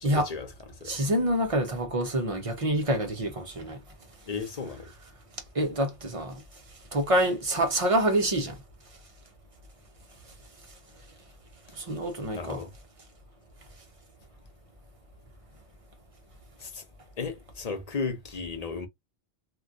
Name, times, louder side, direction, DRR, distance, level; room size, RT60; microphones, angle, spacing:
voice 1, 0.0-0.5 0.8-1.0 4.3-4.9 12.3-12.7 16.6-16.8 17.2-18.9, left 4 dB, 45° left, 0.7 m, -34 dB
voice 2, 0.8-3.8 5.5-6.4 6.9-8.6 11.7-12.6, right 1 dB, 35° right, 0.8 m, -26 dB
3.0 x 2.6 x 2.4 m
omnidirectional pair, 1.0 m